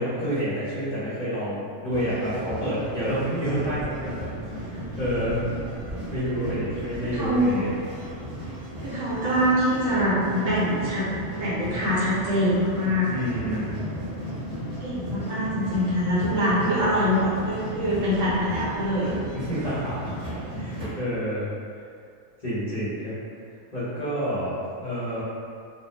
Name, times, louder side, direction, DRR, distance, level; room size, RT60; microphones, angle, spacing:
voice 1, 0.0-4.3 4.6-5.4 6.1-7.7 13.1-13.9 19.3-20.1 20.6-21.5 22.4-23.1 23.7-25.2, equal, 35° left, -13 dB, 0.7 m, -29 dB
sound 1, 1.9-20.9, equal, 30° right, 0.8 m, -35 dB
voice 2, 7.1-7.6 8.8-13.1 13.3-13.6 14.8-19.1, equal, 65° right, -9 dB, 1.0 m, -24 dB
2.6 x 2.0 x 3.0 m, 2.3 s
omnidirectional pair, 1.5 m